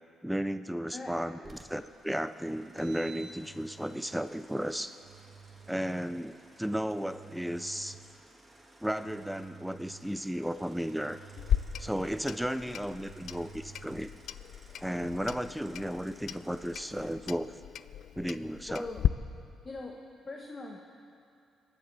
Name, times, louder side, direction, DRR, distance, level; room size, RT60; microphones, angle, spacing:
voice 1, 0.2-1.4 1.7-5.0 5.7-8.0 8.8-11.2 11.8-14.1 14.8-17.6 18.2-18.8, equal, 5° right, 11 dB, 0.4 m, -34 dB
voice 2, 0.9-1.3 6.2-6.3 12.6-12.9 18.7-19.1 19.6-20.8, left 2 dB, 35° left, 1 dB, 1.0 m, -42 dB
sound 1, 1.4-17.1, right 1 dB, 20° right, 1.6 m, -58 dB
Engine, 2.6-4.1 4.9-6.1 6.9-8.2 8.9-10.2 10.9-12.2 12.9-14.1, right 5 dB, 85° right, 1.0 m, -51 dB
Clock, 11.4-19.1, left 10 dB, 70° left, 0.3 m, -36 dB
23.0 x 9.9 x 4.0 m, 2.5 s
cardioid pair, 90°, 0 cm